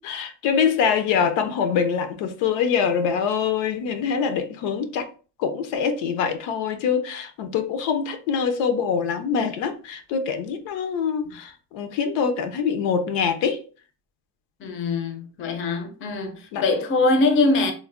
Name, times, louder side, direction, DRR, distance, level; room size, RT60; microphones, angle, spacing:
voice 1, 0.0-5.1 5.4-13.6 16.5-16.6, left 6 dB, 85° left, 0.6 m, -24 dB
voice 2, 14.6-17.7, left 3 dB, 30° left, 0.4 m, -22 dB
3.1 x 2.0 x 2.4 m
cardioid pair, 135°, 43 cm